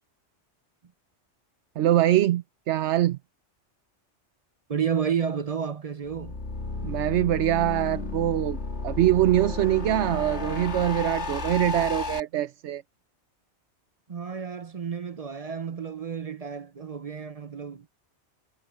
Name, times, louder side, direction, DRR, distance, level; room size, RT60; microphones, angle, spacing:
voice 1, 1.8-3.2 6.8-8.6 8.8-12.8, right 13 dB, 75° right, 0.9 m, -23 dB
voice 2, 4.7-6.4 14.1-17.9, right 7 dB, 40° right, 0.6 m, -31 dB
sound 1, 6.1-12.2, left 3 dB, 65° left, 2.3 m, -32 dB
omnidirectional pair, 1.2 m